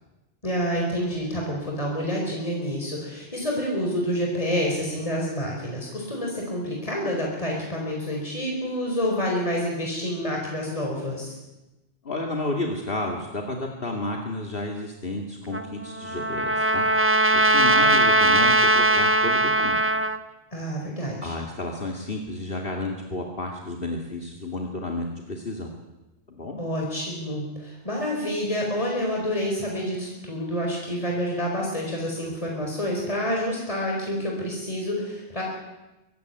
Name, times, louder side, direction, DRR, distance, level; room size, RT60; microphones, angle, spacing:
voice 1, 0.4-11.3 20.5-21.3 26.6-35.4, equal, 35° left, -1 dB, 4.8 m, -28 dB
voice 2, 12.0-16.9 17.3-19.8 21.2-25.7 26.3-26.6, left 2 dB, 60° left, 1 dB, 2.6 m, -31 dB
Trumpet, 15.5-20.2, right 2 dB, 15° right, 0.9 m, -20 dB
23.0 x 17.0 x 9.4 m, 1.0 s
omnidirectional pair, 1.1 m